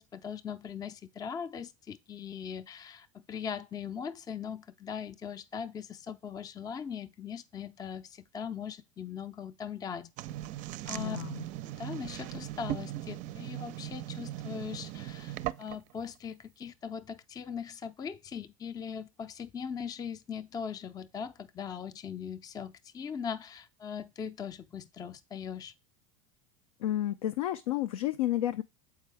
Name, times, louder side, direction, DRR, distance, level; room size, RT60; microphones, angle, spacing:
voice 1, 0.0-10.1 10.9-11.2 11.7-25.7, left 7 dB, 20° left, 0.5 m, -40 dB
sound 1, 10.2-15.9, right 14 dB, 45° right, 0.5 m, -39 dB
voice 2, 11.0-11.5 26.8-28.6, left 13 dB, 75° left, 0.4 m, -31 dB
7.3 x 4.7 x 3.3 m
hypercardioid pair, 90°, 18 cm